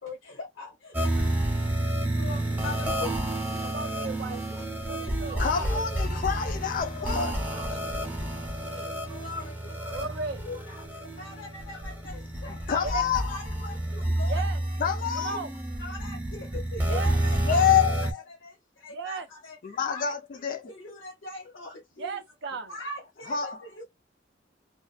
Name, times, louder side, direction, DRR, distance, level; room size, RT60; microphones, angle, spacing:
voice 1, 0.0-3.7 4.2-6.0 6.3-6.4 7.0-8.3 8.6-14.5 15.2-15.4 15.8-17.7 18.3-22.1 22.7-23.8, left 2 dB, 70° left, 0.7 m, -42 dB
sound 1, 0.9-18.1, right 1 dB, 10° right, 0.5 m, -30 dB
voice 2, 3.6-4.4 4.9-5.4 9.9-10.5 12.8-13.1 14.3-14.6 15.1-15.5 16.9-17.2 18.9-19.3 22.0-22.8, right 4 dB, 60° right, 0.4 m, -35 dB
voice 3, 5.4-7.3 12.7-13.2 14.8-15.4 17.4-18.2 19.6-20.6 23.3-23.6, left 8 dB, 45° left, 0.4 m, -27 dB
2.4 x 2.2 x 2.4 m
head